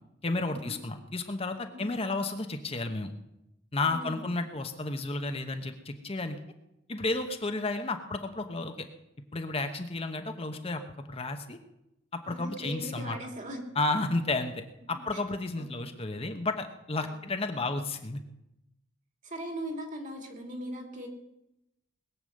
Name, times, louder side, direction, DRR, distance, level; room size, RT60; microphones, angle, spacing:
voice 1, 0.2-3.1 3.7-6.4 6.9-8.9 9.3-10.8 11.1-11.6 12.1-13.2 13.7-18.2, left 2 dB, 30° left, 6 dB, 1.0 m, -32 dB
voice 2, 3.8-4.3 12.3-13.6 15.1-15.2 15.6-15.9 17.0-17.2 19.2-21.1, right 1 dB, 40° right, 3 dB, 2.7 m, -39 dB
20.5 x 7.0 x 7.8 m, 0.87 s
head